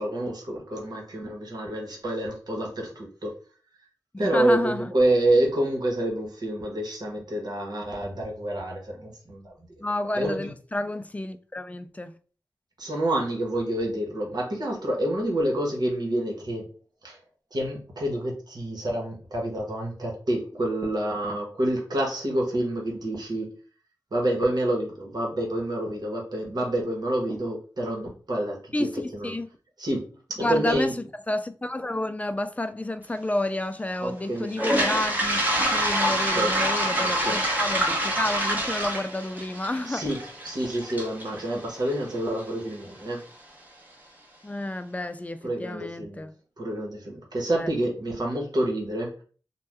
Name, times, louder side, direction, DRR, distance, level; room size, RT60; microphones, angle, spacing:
voice 1, 0.0-3.3 4.2-9.8 10.1-10.5 12.8-16.7 17.0-17.2 17.5-23.5 24.1-29.3 29.8-30.9 34.0-34.5 36.1-36.6 37.0-37.4 39.9-43.2 45.4-46.2 46.6-49.2, right 1 dB, 65° right, 1.1 m, -28 dB
voice 2, 4.1-4.9 9.8-12.1 28.7-28.9 29.2-29.5 30.4-30.9 31.3-40.0 44.4-46.3 47.5-47.7, left 1 dB, 20° left, 0.4 m, -30 dB
Toilet flush, 34.5-42.4, right 1 dB, 25° right, 1.0 m, -26 dB
2.6 x 2.2 x 3.4 m
cardioid pair, 45°, 7 cm